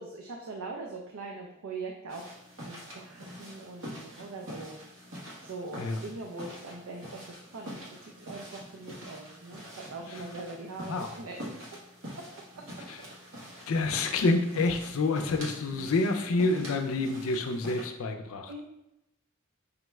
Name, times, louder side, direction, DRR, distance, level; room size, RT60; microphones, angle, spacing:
voice 1, 0.0-2.2 2.6-4.8 5.4-11.4 12.1-12.2 18.5-18.6, right 3 dB, 85° right, 1 dB, 0.5 m, -42 dB
sound 1, 2.1-17.8, equal, 65° right, 1.2 m, -45 dB
voice 2, 13.7-18.6, left 3 dB, 85° left, 5 dB, 0.5 m, -28 dB
4.9 x 2.3 x 3.1 m, 0.87 s
head